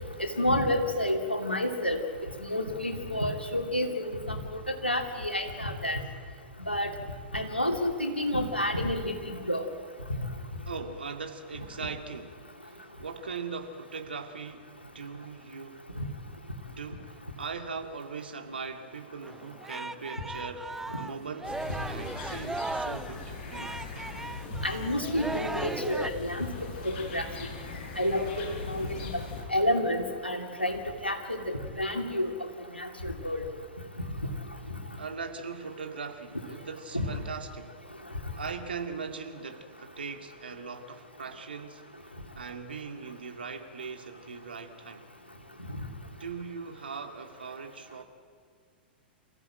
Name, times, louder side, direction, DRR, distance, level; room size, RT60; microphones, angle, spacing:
voice 1, 0.2-2.0 2.4-4.4 4.7-6.0 6.7-6.9 7.3-9.6 16.0-16.1 24.6-26.5 26.8-27.2 28.0-29.2 29.5-32.3 32.7-33.4 36.9-37.1, left 1 dB, 90° left, 3 dB, 2.8 m, -29 dB
voice 2, 10.7-15.9 16.7-21.6 21.9-23.8 35.0-37.8 38.4-45.1 46.1-48.0, right 5 dB, 70° right, 5 dB, 2.2 m, -40 dB
Singing, 19.2-26.1, right 2 dB, 5° right, 0.6 m, -37 dB
sound 1, 21.4-29.4, left 5 dB, 45° left, 6.7 m, -41 dB
27.5 x 15.0 x 9.0 m, 2.2 s
figure-of-eight pair, 100°, 6 cm